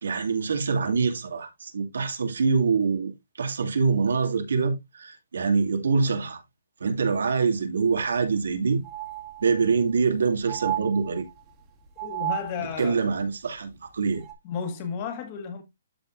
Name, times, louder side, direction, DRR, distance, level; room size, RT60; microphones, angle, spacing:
voice 1, 0.0-3.1 3.4-6.4 6.8-8.8 9.4-11.2 12.8-14.2, right 5 dB, 90° right, 2.3 m, -25 dB
sound 1, 7.9-8.0 8.3-8.4 8.8-9.8 10.5-11.5 12.0-12.9 14.2-14.3, right 15 dB, 15° right, 1.6 m, -34 dB
voice 2, 12.0-13.0 14.4-15.6, left 6 dB, 25° left, 1.7 m, -33 dB
13.0 x 4.3 x 2.5 m
hypercardioid pair, 170°, 0 cm